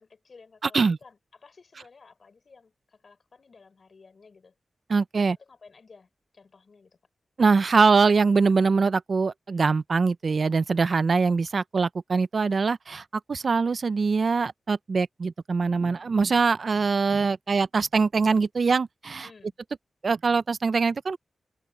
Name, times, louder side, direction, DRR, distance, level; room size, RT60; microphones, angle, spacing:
voice 1, 0.0-4.5 5.2-7.0 19.2-19.5, left 4 dB, 60° left, 6.0 m, -54 dB
voice 2, 4.9-5.4 7.4-19.3 20.0-21.2, right 4 dB, 65° right, 0.6 m, -23 dB
cardioid pair, 70°, 0 cm